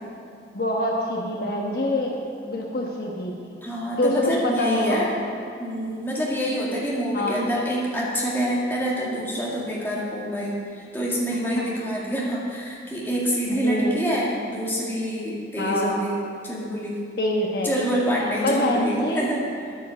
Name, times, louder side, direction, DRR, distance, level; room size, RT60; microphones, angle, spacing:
voice 1, 0.5-2.2 2.4-3.3 4.0-5.1 7.1-7.4 11.6-11.7 13.6-14.0 15.6-16.0 17.2-17.7 18.4-19.2, left 1 dB, 55° left, -1 dB, 1.2 m, -25 dB
voice 2, 3.6-5.1 5.6-17.0 17.6-19.7, equal, 10° left, -5 dB, 2.0 m, -27 dB
10.0 x 9.3 x 6.4 m, 2.4 s
head